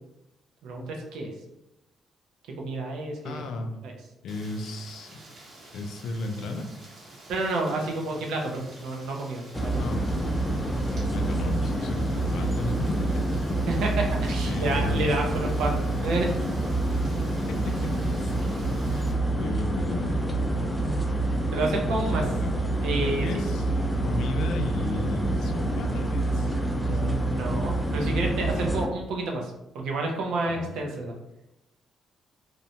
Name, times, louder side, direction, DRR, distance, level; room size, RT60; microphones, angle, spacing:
voice 1, 0.6-1.3 2.6-3.4 3.8-3.9 7.3-9.9 13.7-15.7 16.0-16.3 21.5-22.2 22.8-23.3 26.8-31.1, right 2 dB, 80° right, 1 dB, 0.6 m, -30 dB
voice 2, 3.2-3.8 4.2-5.2 5.7-6.7 9.8-10.0 10.9-13.1 14.4-15.2 17.6-18.5 18.9-19.0 19.3-20.2 21.8-22.6 23.0-23.7 24.0-26.5 26.9-27.1 30.5-30.7, left 2 dB, 75° left, 5 dB, 0.4 m, -34 dB
Rain, 4.3-19.1, right 2 dB, 55° right, 0.9 m, -49 dB
sound 1, 9.5-28.9, right 1 dB, 10° left, 0.4 m, -27 dB
2.6 x 2.1 x 2.8 m, 0.89 s
cardioid pair, 90°, 0 cm